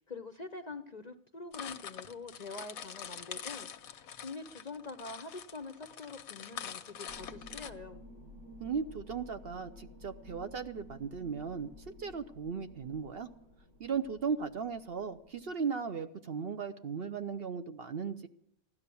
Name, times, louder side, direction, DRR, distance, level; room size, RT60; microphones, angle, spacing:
voice 1, 0.1-8.0, left 3 dB, 40° left, 9 dB, 0.7 m, -45 dB
sound 1, 1.5-7.7, left 8 dB, 90° left, 1.3 m, -45 dB
sound 2, 7.1-15.6, left 1 dB, 70° right, 2.9 m, -53 dB
voice 2, 8.6-13.3 13.8-18.3, right 6 dB, 55° right, 9 dB, 0.8 m, -37 dB
16.0 x 12.0 x 6.9 m, 0.71 s
omnidirectional pair, 1.5 m